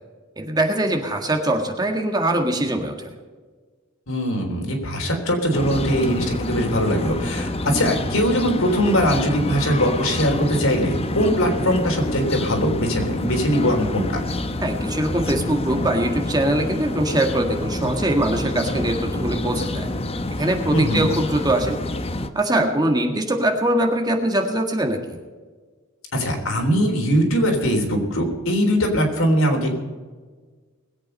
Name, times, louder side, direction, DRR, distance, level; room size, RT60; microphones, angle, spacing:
voice 1, 0.4-3.1 14.6-19.9 20.4-21.8 22.3-25.2, right 1 dB, 20° right, 3 dB, 1.7 m, -22 dB
voice 2, 4.1-14.2 20.7-21.1 26.1-29.7, equal, 85° left, 2 dB, 3.6 m, -21 dB
sound 1, 5.5-22.3, left 2 dB, 30° left, 0.8 m, -27 dB
20.5 x 8.5 x 5.4 m, 1.4 s
head